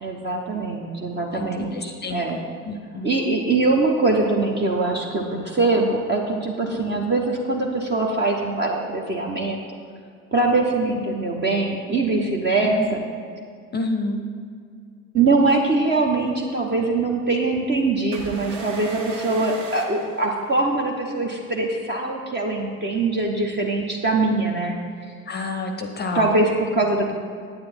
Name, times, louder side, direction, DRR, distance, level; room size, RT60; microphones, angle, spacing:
voice 1, 0.0-2.4 3.0-9.6 10.3-13.0 15.1-24.8 26.1-27.1, right 3 dB, 25° right, -1 dB, 0.9 m, -22 dB
voice 2, 1.3-2.2 2.7-3.1 6.7-7.0 12.6-12.8 13.7-14.2 25.3-26.3, left 2 dB, 25° left, 5 dB, 0.8 m, -29 dB
sound 1, 18.1-20.9, right 4 dB, 45° right, 1.9 m, -36 dB
9.5 x 8.8 x 4.3 m, 2.2 s
figure-of-eight pair, 65°, 43 cm